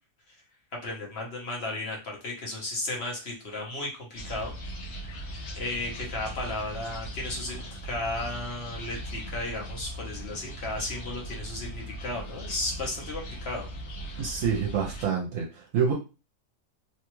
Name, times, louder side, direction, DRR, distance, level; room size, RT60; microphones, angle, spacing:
voice 1, 0.8-4.5 5.0-13.7, left 2 dB, 50° left, -1 dB, 1.1 m, -34 dB
sound 1, 4.2-15.1, right 1 dB, 70° left, 1.2 m, -39 dB
voice 2, 14.2-15.9, right 6 dB, 75° right, 1 dB, 1.0 m, -27 dB
3.0 x 2.3 x 3.0 m, 0.30 s
omnidirectional pair, 1.4 m